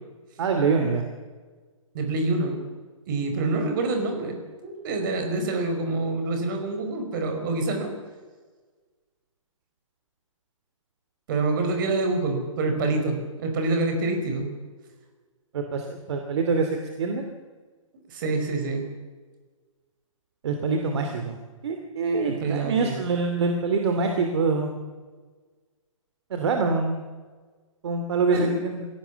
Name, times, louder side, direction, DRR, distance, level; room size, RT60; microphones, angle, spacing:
voice 1, 0.4-1.0 15.5-16.7 17.0-17.2 20.4-21.4 21.6-24.7 26.3-27.0 27.8-28.9, right 4 dB, 55° right, 5 dB, 2.7 m, -25 dB
voice 2, 1.9-2.6 3.1-7.9 11.3-14.5 18.1-18.9 22.3-23.0 28.3-28.6, right 3 dB, 40° right, 5 dB, 5.2 m, -26 dB
24.5 x 17.5 x 7.0 m, 1.4 s
hypercardioid pair, 160°, 17 cm